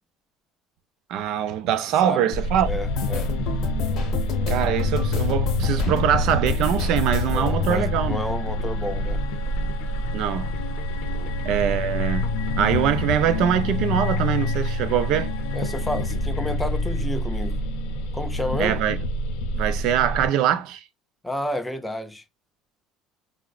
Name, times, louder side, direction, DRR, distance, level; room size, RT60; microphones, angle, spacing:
voice 1, 1.1-2.7 4.5-8.2 10.1-10.6 11.4-15.3 18.6-19.0 19.5-20.8, right 10 dB, 55° right, 0.4 m, -23 dB
voice 2, 2.0-2.3 2.7-3.3 7.3-9.2 11.1-11.3 15.5-17.6 18.1-18.8 21.2-22.2, left 1 dB, 5° left, 0.4 m, -30 dB
sound 1, 2.3-20.3, left 1 dB, 80° left, 0.6 m, -27 dB
sound 2, 2.9-9.7 10.0-11.0 11.3-11.7 12.0-12.2, left 5 dB, 45° left, 0.9 m, -28 dB
4.7 x 2.1 x 2.3 m
cardioid pair, 170°, 0 cm